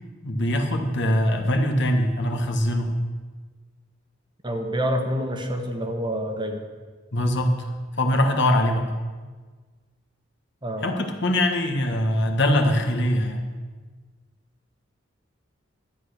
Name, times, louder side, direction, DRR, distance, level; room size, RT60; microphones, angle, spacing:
voice 1, 0.2-2.9 7.1-7.7 8.0-9.0 10.8-13.4, left 1 dB, 60° left, 4 dB, 1.4 m, -22 dB
voice 2, 4.4-6.6 10.6-10.8, equal, 25° right, 4 dB, 1.2 m, -27 dB
12.0 x 8.9 x 6.5 m, 1.4 s
head